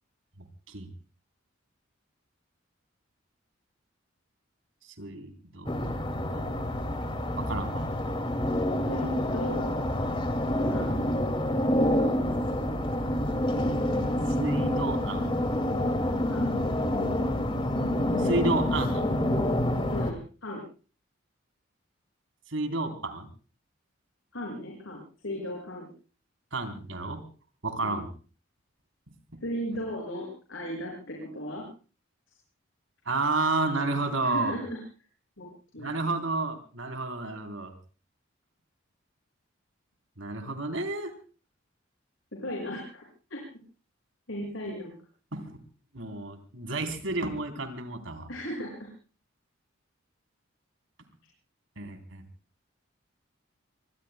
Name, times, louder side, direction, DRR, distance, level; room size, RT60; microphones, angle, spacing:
voice 1, 5.0-5.8 6.3-6.5 7.4-7.9 14.3-15.3 18.2-19.1 22.5-23.3 26.5-27.3 27.6-28.1 33.1-34.6 35.8-37.7 40.2-41.1 45.3-45.6 45.9-48.3 51.8-52.2, right 2 dB, 85° right, 6 dB, 3.6 m, -31 dB
sound 1, 5.7-20.1, left 1 dB, 25° left, 2.3 m, -27 dB
voice 2, 8.9-9.7 10.7-10.9 16.3-16.5 19.9-20.6 24.3-25.9 27.8-28.0 29.4-31.6 34.2-34.8 35.4-35.5 35.7-36.2 42.3-43.0 43.3-43.4 44.3-44.9 48.3-48.9, equal, 85° left, -1 dB, 6.2 m, -36 dB
26.5 x 24.0 x 2.2 m, 0.36 s
head